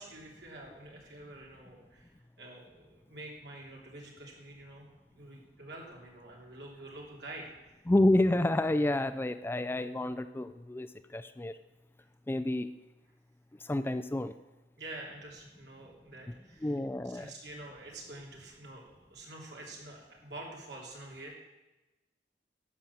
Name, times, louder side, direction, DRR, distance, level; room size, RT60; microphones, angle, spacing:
voice 1, 0.0-2.1 2.4-4.9 5.1-7.5 14.8-16.8 17.0-21.4, right 2 dB, 70° right, -1 dB, 3.0 m, -47 dB
voice 2, 7.9-11.6 12.3-12.7 13.6-14.3 16.3-16.4 16.6-17.3, left 1 dB, 15° left, 11 dB, 0.3 m, -29 dB
11.5 x 7.8 x 7.0 m, 1.1 s
head